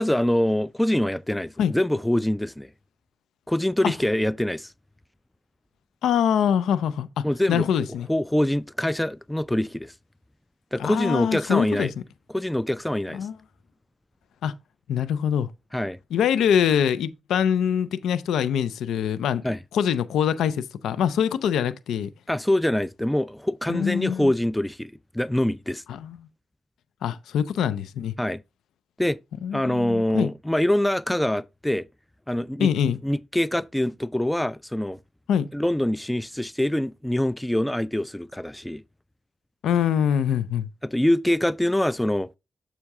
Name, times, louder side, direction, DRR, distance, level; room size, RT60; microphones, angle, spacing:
voice 1, 0.0-2.7 3.5-4.7 7.2-7.7 8.1-9.9 10.7-11.9 12.3-13.3 15.7-16.0 19.4-19.6 22.3-25.8 28.2-28.4 29.0-29.2 29.5-31.9 32.3-32.7 33.0-35.0 35.5-38.8 40.8-42.3, left 1 dB, 10° left, 0.4 m, -24 dB
voice 2, 6.0-8.1 10.8-11.9 13.1-13.3 14.4-14.5 14.9-15.5 16.1-19.4 19.7-22.1 23.7-24.3 25.9-26.2 27.0-28.1 29.4-30.3 32.6-33.0 35.3-35.5 39.6-40.7, left 8 dB, 80° left, 0.4 m, -24 dB
7.0 x 5.6 x 3.5 m
supercardioid pair, 40°, 0 cm